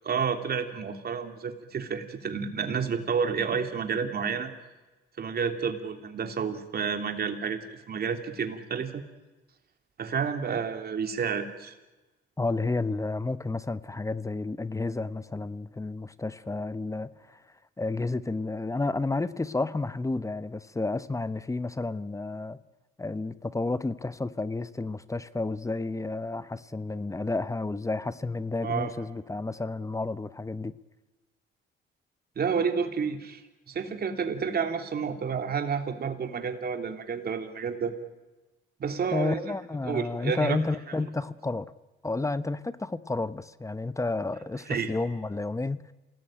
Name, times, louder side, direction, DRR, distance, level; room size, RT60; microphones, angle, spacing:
voice 1, 0.0-4.5 5.2-9.0 10.0-11.7 28.6-28.9 32.4-33.4 33.7-37.9 38.8-39.5 39.8-40.6 44.7-44.9, right 6 dB, 50° right, 3.1 m, -30 dB
voice 2, 12.4-17.4 17.8-22.6 23.0-30.7 39.1-41.7 42.0-45.9, left 3 dB, 15° left, 1.0 m, -31 dB
28.0 x 19.0 x 9.0 m
cardioid pair, 90°, 20 cm